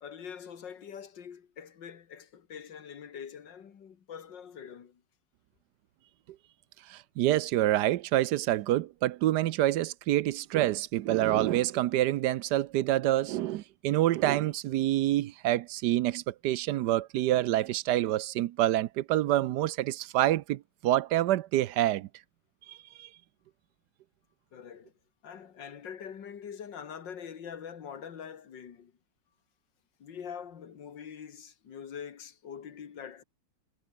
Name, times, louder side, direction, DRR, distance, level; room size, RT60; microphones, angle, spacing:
voice 1, 0.0-5.0 24.5-24.9 25.2-28.9 30.0-33.2, left 7 dB, 85° left, 2.4 m, -44 dB
voice 2, 6.9-22.1 22.7-23.1, right 14 dB, 75° right, 1.2 m, -27 dB
omnidirectional pair, 1.9 m